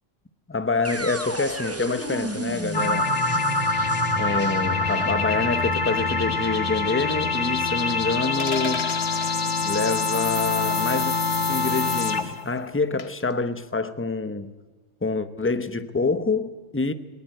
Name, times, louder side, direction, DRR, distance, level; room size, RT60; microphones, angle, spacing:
voice 1, 0.5-3.1 4.2-8.9 9.6-11.2 11.5-14.5 15.0-16.9, left 3 dB, 10° left, 0.8 m, -26 dB
sound 1, 0.8-8.8, right 1 dB, 15° right, 1.2 m, -33 dB
sound 2, 2.7-12.4, left 3 dB, 90° left, 1.8 m, -25 dB
sound 3, 8.4-9.4 11.0-11.2 13.0-13.3, left 5 dB, 65° left, 1.3 m, -34 dB
20.0 x 18.5 x 9.1 m
omnidirectional pair, 1.2 m